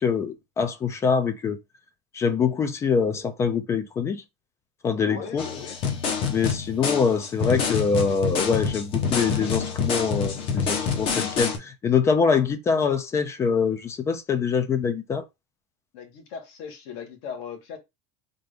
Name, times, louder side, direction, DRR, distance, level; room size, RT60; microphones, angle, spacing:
voice 1, 0.0-1.6 2.1-4.2 4.8-5.4 6.3-15.3, left 5 dB, 20° left, 0.4 m, -24 dB
voice 2, 5.0-5.8 15.9-17.8, left 6 dB, 65° left, 1.4 m, -38 dB
sound 1, 5.4-11.6, left 6 dB, 40° left, 0.9 m, -27 dB
3.6 x 2.5 x 3.3 m
supercardioid pair, 155°, 15 cm